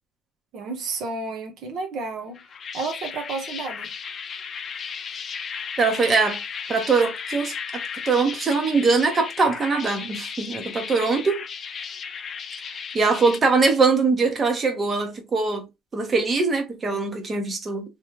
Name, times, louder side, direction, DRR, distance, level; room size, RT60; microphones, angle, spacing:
voice 1, 0.5-2.4 2.7-3.9, right 3 dB, 65° right, 1.0 m, -31 dB
sound 1, 2.3-13.4, left 6 dB, 35° left, 0.6 m, -35 dB
voice 2, 5.8-6.4 6.7-11.4 12.6-15.6 15.9-17.8, right 4 dB, 30° right, 1.2 m, -22 dB
3.3 x 3.2 x 3.1 m
cardioid pair, 125°, 0 cm